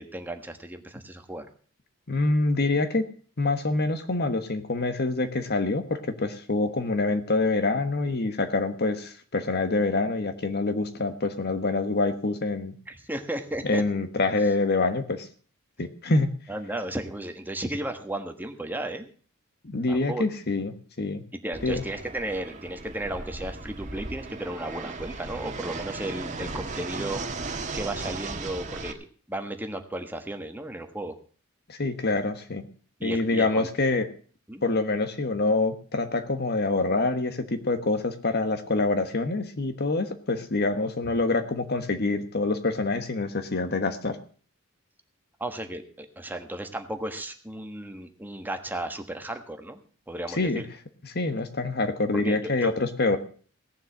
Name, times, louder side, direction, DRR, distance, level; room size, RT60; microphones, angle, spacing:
voice 1, 0.0-1.5 12.9-13.8 16.5-19.1 19.9-20.3 21.3-27.2 27.7-29.0 29.3-31.2 33.0-33.7 34.5-34.6 45.4-49.8 50.1-50.7 52.1-52.7, right 1 dB, 10° right, 6 dB, 1.3 m, -34 dB
voice 2, 2.1-3.0 3.4-12.7 13.7-15.3 15.8-16.3 19.6-21.2 21.6-21.8 31.7-32.6 33.0-34.0 34.6-44.2 50.4-50.6 51.1-53.2, left 3 dB, 50° left, 9 dB, 1.3 m, -26 dB
Fixed-wing aircraft airplane, 21.5-28.9, right 3 dB, 35° right, 1.5 m, -36 dB
17.0 x 7.4 x 7.1 m, 0.43 s
head